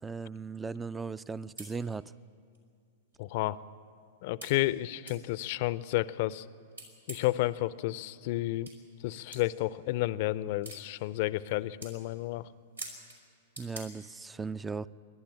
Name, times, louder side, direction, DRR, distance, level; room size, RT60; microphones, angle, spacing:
voice 1, 0.0-2.1 13.6-14.9, right 4 dB, 10° right, 19 dB, 0.4 m, -37 dB
sound 1, 1.3-1.4 1.6-1.7 2.5-2.6 3.1-3.2 4.4-4.5 5.1-5.2 6.7-7.4 8.7-8.8 9.3-9.4 10.6-10.8 11.4-11.5 11.8-12.0 12.8-13.2 13.6-13.8, right 2 dB, 85° right, 4.1 m, -44 dB
voice 2, 3.2-3.6 4.2-6.4 7.1-8.7 9.0-12.5, left 17 dB, 50° left, 18 dB, 0.5 m, -31 dB
28.0 x 12.0 x 8.7 m, 2.2 s
figure-of-eight pair, 100°, 0 cm